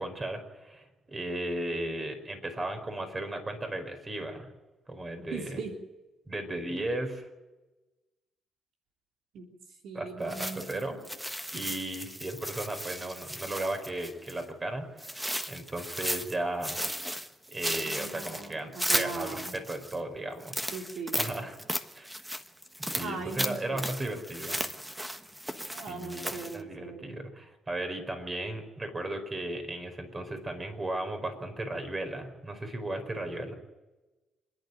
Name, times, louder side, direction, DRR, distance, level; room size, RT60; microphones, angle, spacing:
voice 1, 0.0-4.5 4.9-5.6 6.3-7.3 9.9-11.0 11.5-16.8 17.1-17.2 17.5-20.6 21.1-21.6 21.9-22.2 22.8-24.6 25.9-33.5, right 1 dB, 25° right, 7 dB, 4.8 m, -35 dB
voice 2, 5.3-5.7 9.3-9.5 9.8-10.7 11.5-11.6 17.8-19.5 20.7-21.3 23.0-23.9 25.7-27.2, right 4 dB, 75° right, 2 dB, 3.6 m, -39 dB
sound 1, 10.3-14.4 15.0-16.4 16.6-20.0 20.4-26.6, equal, 5° right, 1.4 m, -35 dB
27.0 x 11.5 x 9.3 m, 1.1 s
cardioid pair, 90°, 0 cm